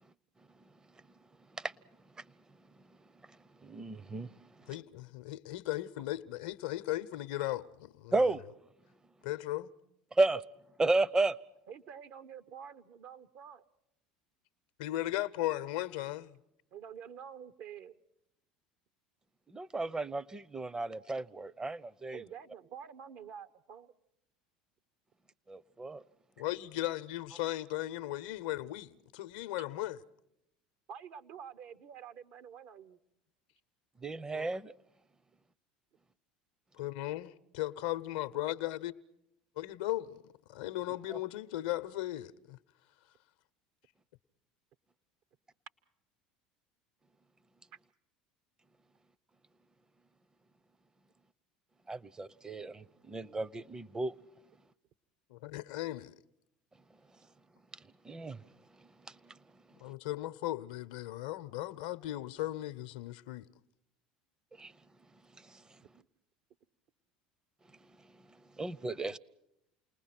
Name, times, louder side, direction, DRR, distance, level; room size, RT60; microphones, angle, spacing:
voice 1, 3.3-4.7 8.1-8.4 10.1-10.4 10.8-11.4 19.5-22.2 25.5-26.0 34.0-34.7 41.1-41.2 51.9-54.2 57.7-58.5 58.8-59.8 64.6-64.7 65.3-65.8 67.8-69.2, right 2 dB, 20° right, 0.7 m, -34 dB
voice 2, 4.7-8.3 9.2-9.7 14.8-16.4 26.4-30.0 34.3-34.4 36.7-38.9 39.6-42.6 55.3-56.2 59.8-63.5, left 15 dB, 70° left, 0.8 m, -37 dB
voice 3, 11.7-13.6 16.7-18.0 22.1-23.9 30.9-33.0 66.0-66.1, right 8 dB, 55° right, 1.0 m, -48 dB
28.5 x 20.0 x 6.0 m
hypercardioid pair, 70°, 4 cm